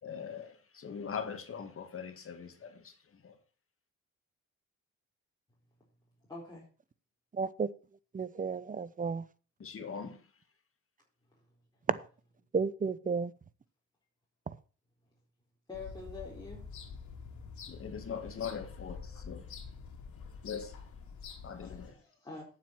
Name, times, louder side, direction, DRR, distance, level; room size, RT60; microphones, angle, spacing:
voice 1, 0.0-2.9 3.2-3.3 9.6-10.2 17.7-19.4 20.4-20.7 21.4-21.9, left 6 dB, 45° left, 2.2 m, -41 dB
voice 2, 6.3-6.6 15.7-16.6 19.1-19.2 21.4-22.5, left 3 dB, 15° left, 4.3 m, -46 dB
voice 3, 7.3-7.7 8.1-9.2 11.9-12.0 12.5-13.3, right 5 dB, 25° right, 0.8 m, -32 dB
sound 1, 15.7-21.9, left 5 dB, 70° left, 2.7 m, -47 dB
9.1 x 7.7 x 6.1 m
cardioid pair, 90°, 30 cm